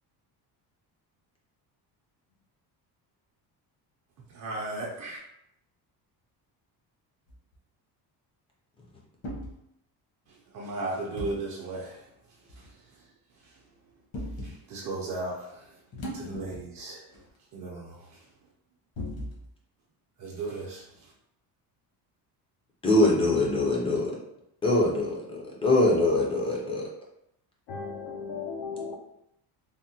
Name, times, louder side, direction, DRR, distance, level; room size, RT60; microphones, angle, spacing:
voice 1, 4.3-5.2 10.5-12.1 12.6-12.7 14.4-15.7 16.1-17.1 17.5-18.2 20.2-21.1, right 2 dB, 45° right, 0.5 m, -36 dB
sound 1, 7.3-7.5 9.2-9.5 11.2-11.4 12.5-12.7 14.1-14.6 15.9-16.8 17.1-17.2 18.9-19.5, equal, 60° left, 1.1 m, -37 dB
voice 2, 22.8-24.1 24.6-26.9, left 2 dB, 15° left, 0.4 m, -23 dB
voice 3, 27.7-29.0, left 5 dB, 85° left, 0.6 m, -36 dB
3.5 x 2.1 x 2.7 m
cardioid pair, 180°, 40 cm